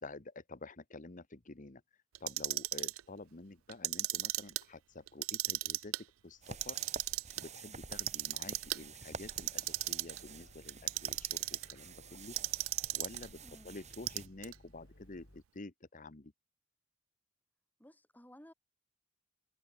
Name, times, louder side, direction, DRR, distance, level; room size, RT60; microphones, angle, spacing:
voice 1, 0.0-1.8 2.2-5.9 6.2-6.8 7.4-12.4 12.9-13.4 13.6-16.3, left 2 dB, 40° left, 1.2 m, -49 dB
Clock, 2.2-3.0 3.7-4.6 5.1-6.0 6.5-7.4 7.9-8.8 9.3-10.2 10.7-11.7 12.4-13.3 13.9-14.5, right 18 dB, 80° right, 0.4 m, -35 dB
sound 1, 6.4-14.3, right 5 dB, 35° right, 3.8 m, -50 dB
sound 2, 9.5-15.4, left 1 dB, 60° left, 5.6 m, -61 dB
voice 2, 13.4-13.7 17.8-18.5, equal, 10° left, 3.2 m, -56 dB
head